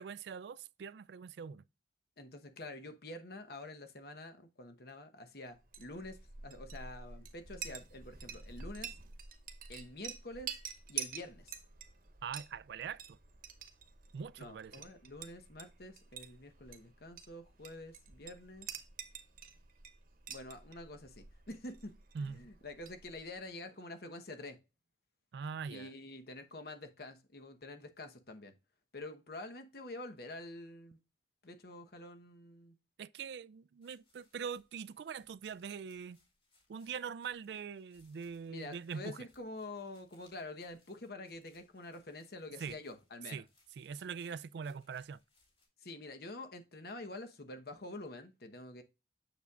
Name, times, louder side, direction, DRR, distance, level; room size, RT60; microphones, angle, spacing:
voice 1, 0.0-1.6 12.2-13.2 14.1-14.8 22.1-22.5 25.3-25.9 33.0-36.2 36.7-39.3 42.6-42.8 43.3-43.5 43.8-45.2, right 6 dB, 65° right, 0.3 m, -43 dB
voice 2, 2.2-9.0 9.7-10.5 10.9-11.6 14.4-18.7 20.3-24.6 25.7-28.5 28.9-31.0 31.4-32.7 38.5-43.4 45.8-48.8, left 2 dB, 60° left, 1.0 m, -47 dB
Chink clink, 5.6-23.4, right 7 dB, 50° right, 0.9 m, -48 dB
sound 1, 33.8-45.7, left 2 dB, 30° left, 2.9 m, -72 dB
7.1 x 6.9 x 2.4 m
head